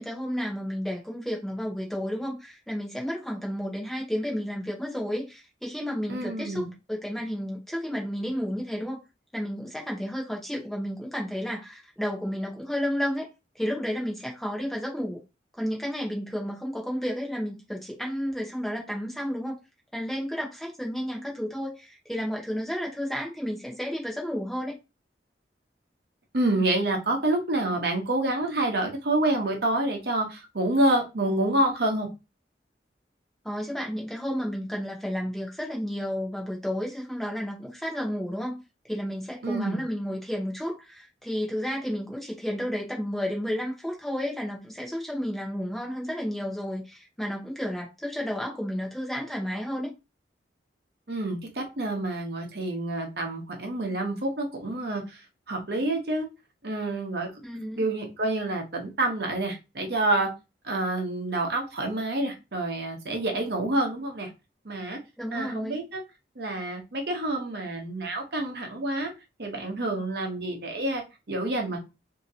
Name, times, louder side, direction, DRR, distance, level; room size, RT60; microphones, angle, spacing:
voice 1, 0.0-9.0 9.3-13.3 13.5-15.2 15.5-19.6 19.9-24.8 33.4-38.6 38.9-49.9 57.4-57.8 65.2-65.8, equal, ahead, 0.8 m, -32 dB
voice 2, 6.1-6.7 26.3-32.1 39.4-39.8 51.1-55.2 55.5-56.3 56.6-57.3 57.8-60.3 60.6-64.3 64.6-65.0 65.3-66.0 66.4-69.1 69.4-71.8, right 2 dB, 60° right, 0.9 m, -28 dB
3.7 x 2.8 x 2.8 m
head